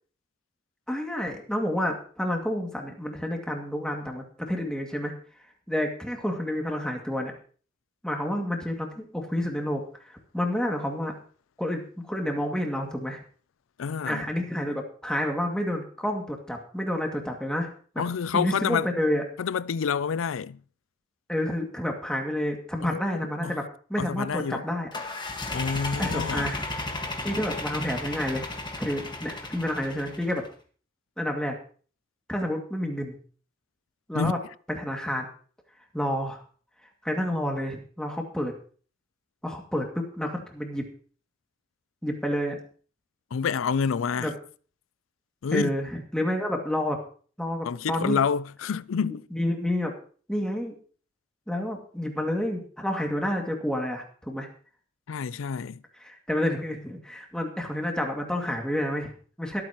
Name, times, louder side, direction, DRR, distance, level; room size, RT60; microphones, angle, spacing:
voice 1, 0.9-5.1 5.7-7.3 8.0-11.1 11.6-13.2 14.1-17.7 17.9-18.0 18.3-19.2 21.3-23.6 23.9-24.9 26.0-26.6 27.2-28.5 28.8-30.4 31.2-31.6 32.3-33.2 34.1-34.4 34.7-35.3 35.9-36.4 37.0-38.5 39.4-40.9 42.0-42.6 44.2-44.3 45.5-47.0 47.4-48.2 49.0-49.9 50.3-50.8 51.5-54.5 56.0-59.6, left 1 dB, 5° left, 2.3 m, -29 dB
voice 2, 13.8-14.3 18.0-18.9 19.4-20.6 22.8-23.6 24.0-24.6 25.5-26.5 34.1-34.3 43.3-44.3 45.4-45.7 47.6-49.2 55.1-55.8, left 6 dB, 80° left, 0.4 m, -28 dB
sound 1, 24.9-30.5, left 2 dB, 25° left, 1.6 m, -34 dB
22.5 x 8.7 x 3.0 m
head